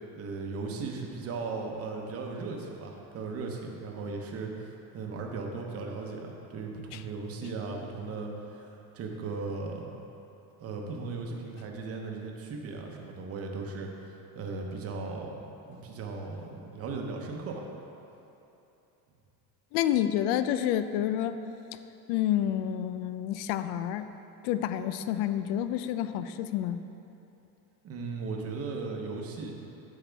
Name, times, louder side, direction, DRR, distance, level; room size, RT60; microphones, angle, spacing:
voice 1, 0.1-9.8 10.6-13.9 14.3-15.4 15.7-17.6 27.8-29.5, right 4 dB, 35° right, 1 dB, 0.9 m, -37 dB
voice 2, 19.7-21.4 22.1-24.1 24.4-26.8, left 11 dB, 75° left, 11 dB, 0.5 m, -29 dB
9.8 x 7.5 x 3.4 m, 2.9 s
cardioid pair, 165°, 42 cm